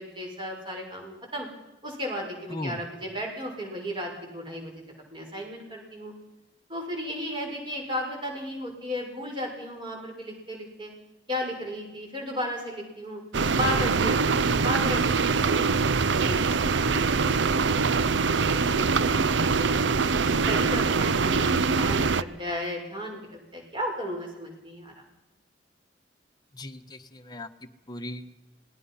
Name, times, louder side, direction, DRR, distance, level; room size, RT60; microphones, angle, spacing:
voice 1, 0.0-1.5 1.8-4.7 5.1-6.1 6.7-10.9 11.3-13.2 13.5-15.7 16.2-16.4 16.7-19.7 20.5-24.9, equal, 30° right, 0 dB, 6.4 m, -35 dB
voice 2, 2.5-2.8 26.5-27.5 27.9-28.3, left 1 dB, 25° left, 6 dB, 1.3 m, -37 dB
sound 1, 13.3-22.2, right 4 dB, 90° right, 0.7 m, -23 dB
27.0 x 19.0 x 5.7 m, 1.0 s
head